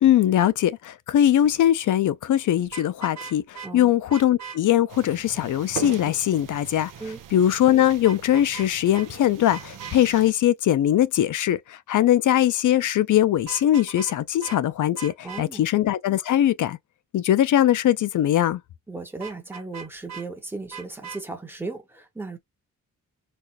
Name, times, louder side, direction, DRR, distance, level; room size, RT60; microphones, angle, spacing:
voice 1, 0.0-6.9 7.3-16.8 17.1-18.6, left 11 dB, 70° left, 0.5 m, -21 dB
Vehicle horn car horn honking, 2.6-3.7 4.1-4.6 8.0-8.7 8.9-9.1 9.5-10.0 13.4-14.2 14.4-14.6 15.0-15.4 19.2-20.3 20.7-21.2, right 6 dB, 55° right, 1.0 m, -39 dB
sound 1, 4.9-10.3, right 9 dB, 75° right, 0.6 m, -40 dB
voice 2, 15.2-15.6 18.9-22.4, right 3 dB, 5° right, 0.8 m, -36 dB
4.2 x 2.4 x 2.4 m
wide cardioid pair, 160°, 32 cm